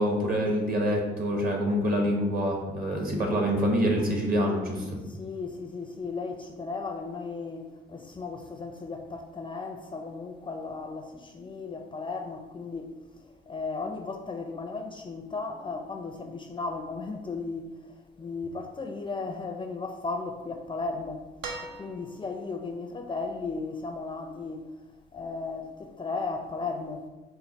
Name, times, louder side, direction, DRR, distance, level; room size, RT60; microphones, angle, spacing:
voice 1, 0.0-4.9, equal, 45° right, 1.2 m, -26 dB
voice 2, 3.2-3.5 5.2-12.9 13.5-21.3 21.6-24.7 25.1-27.1, left 4 dB, 25° left, 0.4 m, -35 dB
sound 1, 21.4-22.4 23.9-24.0, right 3 dB, 75° right, 0.7 m, -40 dB
4.5 x 2.2 x 4.1 m
supercardioid pair, 70°, 21 cm